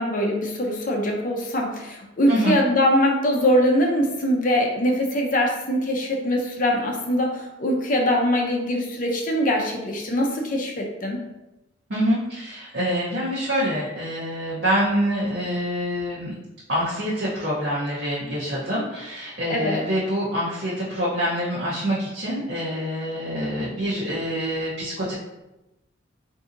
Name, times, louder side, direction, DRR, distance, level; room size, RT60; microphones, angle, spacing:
voice 1, 0.0-11.2 19.5-19.8, equal, 45° left, 1 dB, 0.6 m, -22 dB
voice 2, 11.9-16.4 16.7-25.1, equal, 60° right, -8 dB, 0.8 m, -26 dB
3.8 x 2.7 x 2.5 m, 0.97 s
head